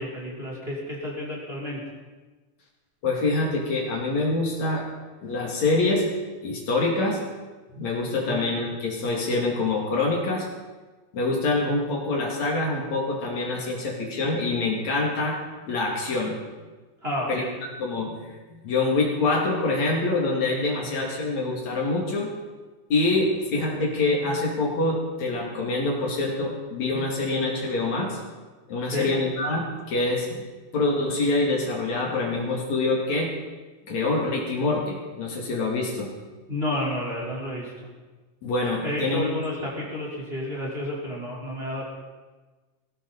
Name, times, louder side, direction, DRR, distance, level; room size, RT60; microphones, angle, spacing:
voice 1, 0.0-1.8 8.3-8.5 17.0-17.5 28.8-29.1 36.5-37.7 38.8-41.8, left 1 dB, 20° right, -5 dB, 4.5 m, -31 dB
voice 2, 3.0-4.8 5.2-6.1 6.4-7.2 7.7-10.5 11.1-15.4 15.7-16.4 17.3-17.4 17.8-22.3 22.9-28.2 28.7-30.4 30.7-33.3 33.9-36.1 38.4-39.3, left 2 dB, 65° left, -2 dB, 3.9 m, -25 dB
19.5 x 16.0 x 4.2 m, 1.3 s
omnidirectional pair, 3.5 m